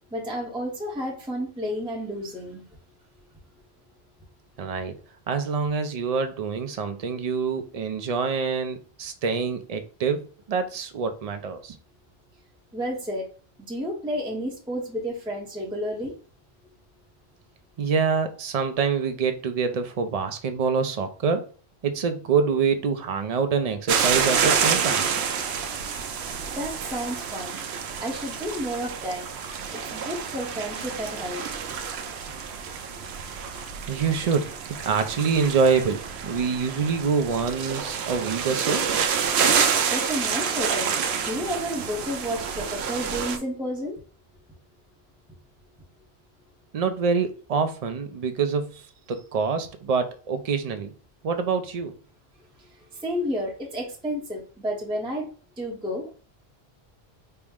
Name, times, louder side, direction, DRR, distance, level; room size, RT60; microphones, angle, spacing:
voice 1, 0.1-2.6 12.7-13.3 13.7-16.2 26.5-27.6 28.0-29.3 29.7-31.4 39.9-40.9 41.2-44.0 52.6-56.2, equal, 5° right, 0.7 m, -31 dB
voice 2, 4.6-4.9 5.3-11.8 17.8-21.5 21.8-25.0 33.9-38.9 46.7-50.9 51.2-52.0, right 5 dB, 50° right, 0.5 m, -26 dB
sound 1, 23.9-43.4, right 6 dB, 80° right, 0.8 m, -28 dB
4.4 x 2.0 x 3.5 m
omnidirectional pair, 1.1 m